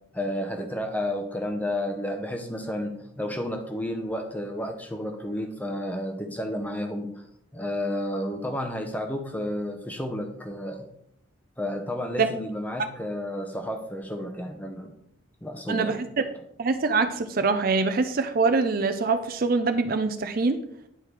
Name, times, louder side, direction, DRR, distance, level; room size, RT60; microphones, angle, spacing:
voice 1, 0.1-7.2 7.5-10.9 11.6-14.9 15.4-16.0, left 1 dB, 10° left, 4 dB, 0.7 m, -31 dB
voice 2, 15.7-16.2 16.6-20.6, right 4 dB, 45° right, 9 dB, 0.4 m, -24 dB
9.7 x 4.6 x 3.3 m, 0.74 s
head